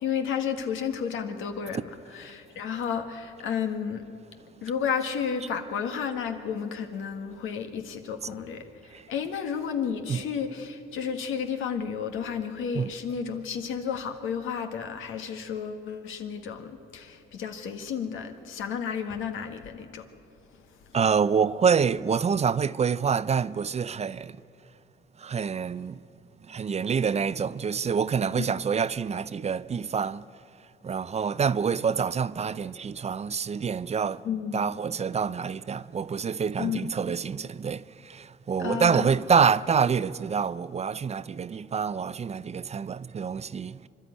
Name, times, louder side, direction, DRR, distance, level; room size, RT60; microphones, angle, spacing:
voice 1, 0.0-4.0 4.6-20.1 20.7-20.9 28.4-28.5 34.2-34.6 36.6-36.9 38.6-39.1, left 7 dB, 85° left, 1.7 m, -32 dB
voice 2, 20.9-24.4 25.2-26.0 26.5-30.2 30.8-34.2 34.5-43.9, right 6 dB, 35° right, 0.5 m, -26 dB
26.0 x 12.0 x 9.8 m
cardioid pair, 90°, 20 cm